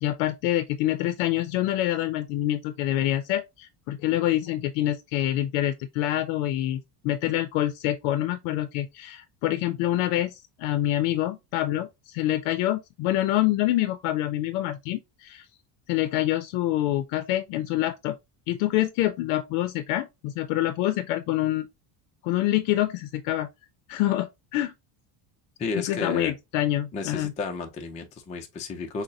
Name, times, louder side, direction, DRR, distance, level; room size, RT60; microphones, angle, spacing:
voice 1, 0.0-15.5 15.9-18.1 18.5-21.7 22.2-23.5 23.9-24.7 25.8-27.3, left 14 dB, 70° left, 0.6 m, -26 dB
voice 2, 25.6-26.3 26.9-29.0, left 3 dB, 15° left, 0.3 m, -32 dB
6.2 x 2.1 x 2.6 m
cardioid pair, 145°, 49 cm